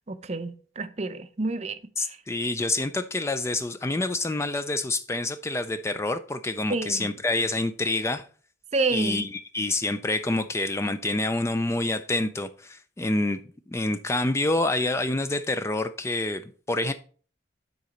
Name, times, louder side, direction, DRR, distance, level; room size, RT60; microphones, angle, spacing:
voice 1, 0.1-2.2 6.7-7.1 8.7-9.2, right 3 dB, 35° right, 0.5 m, -29 dB
voice 2, 2.0-8.3 8.9-13.4 13.7-16.9, left 2 dB, 15° left, 0.3 m, -27 dB
9.4 x 4.1 x 5.0 m
head